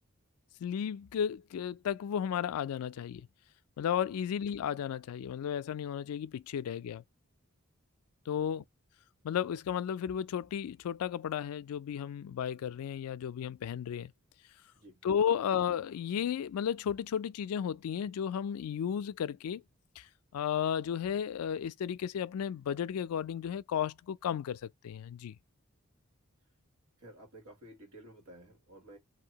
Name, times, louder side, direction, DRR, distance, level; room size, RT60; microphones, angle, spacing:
voice 1, 0.6-3.3 3.8-7.0 8.3-8.6 9.2-14.1 15.0-19.6 20.0-20.1 20.3-25.4, left 8 dB, 80° left, 0.3 m, -34 dB
voice 2, 8.3-8.6 14.8-15.0 27.0-29.0, right 1 dB, 90° right, 1.8 m, -53 dB
2.7 x 2.6 x 2.8 m
head